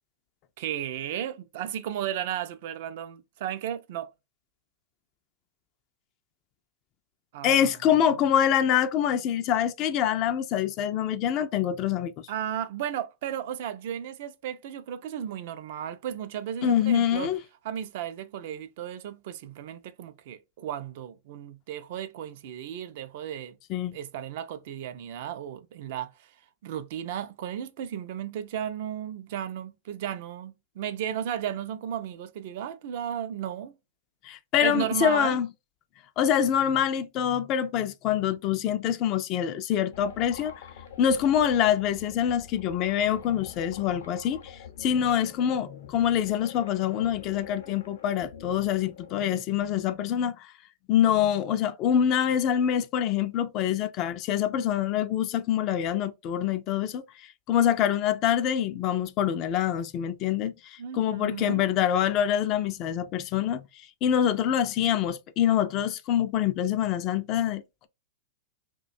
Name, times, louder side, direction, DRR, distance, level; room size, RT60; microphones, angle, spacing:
voice 1, 0.6-4.1 7.3-7.7 12.3-17.3 17.6-23.6 23.9-26.3 26.6-33.7 34.6-35.4 60.8-61.7, right 10 dB, 60° right, 0.4 m, -34 dB
voice 2, 7.4-12.3 16.6-17.4 23.7-23.9 34.2-35.5 36.2-40.5 41.0-50.5 50.9-57.0 57.5-63.6 64.0-67.9, left 9 dB, 40° left, 0.3 m, -25 dB
sound 1, 39.9-49.4, left 7 dB, 75° left, 0.7 m, -46 dB
2.4 x 2.2 x 2.5 m
hypercardioid pair, 115°, 0 cm